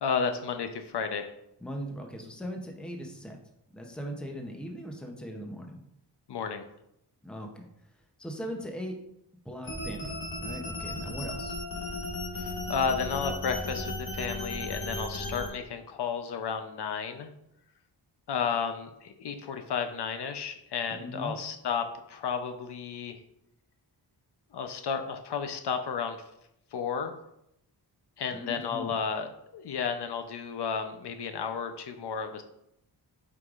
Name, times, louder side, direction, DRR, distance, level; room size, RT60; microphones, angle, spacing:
voice 1, 0.0-1.3 6.3-6.6 12.3-17.3 18.3-23.2 24.5-26.2 26.7-27.2 28.2-32.4, left 6 dB, 70° left, 7 dB, 0.7 m, -32 dB
voice 2, 1.6-3.4 3.7-5.8 7.2-7.7 8.2-9.0 9.4-10.1 10.4-11.5 20.9-21.4 28.3-28.9, equal, ahead, 2 dB, 0.6 m, -39 dB
sound 1, 9.6-15.5, left 2 dB, 55° left, 2.0 m, -35 dB
8.5 x 4.8 x 2.4 m, 0.80 s
wide cardioid pair, 170°, 42 cm